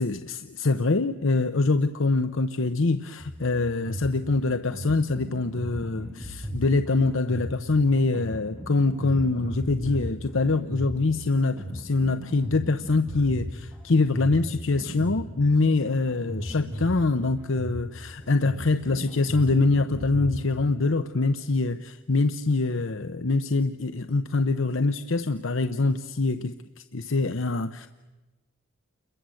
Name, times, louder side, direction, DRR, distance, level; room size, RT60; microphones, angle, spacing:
voice 1, 0.0-27.9, left 3 dB, 65° left, 0.8 m, -24 dB
sound 1, 3.2-20.4, equal, 20° right, 6.3 m, -37 dB
29.5 x 22.5 x 7.7 m
head